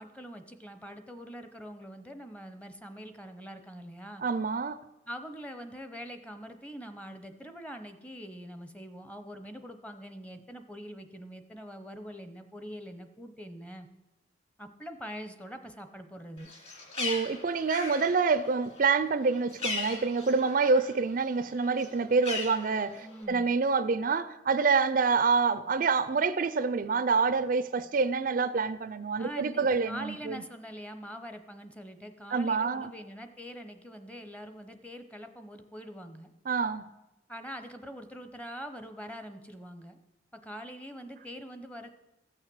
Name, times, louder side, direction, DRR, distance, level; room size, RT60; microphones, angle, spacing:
voice 1, 0.0-4.2 5.1-13.9 14.6-16.5 23.0-23.5 29.2-36.3 37.3-40.0 40.3-41.9, equal, 5° left, 0.8 m, -44 dB
voice 2, 4.2-4.8 17.0-30.4 32.3-32.9 36.5-36.9, right 4 dB, 45° right, 0.4 m, -27 dB
Bird, 16.4-21.0 21.3-23.2, left 4 dB, 35° left, 2.4 m, -38 dB
14.5 x 6.5 x 7.7 m
head